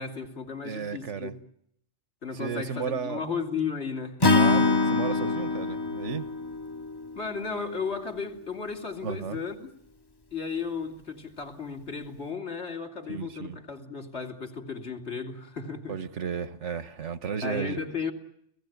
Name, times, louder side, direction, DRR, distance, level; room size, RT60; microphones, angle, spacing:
voice 1, 0.0-1.3 2.2-4.2 7.2-9.7 10.3-16.0 17.4-18.1, left 5 dB, 65° left, 3.0 m, -34 dB
voice 2, 0.6-1.3 2.3-3.2 4.3-6.3 9.0-9.4 13.1-13.6 15.9-17.8, right 6 dB, 75° right, 1.6 m, -34 dB
Acoustic guitar / Strum, 4.2-7.5, left 3 dB, 20° left, 1.0 m, -24 dB
30.0 x 17.0 x 9.3 m
omnidirectional pair, 1.2 m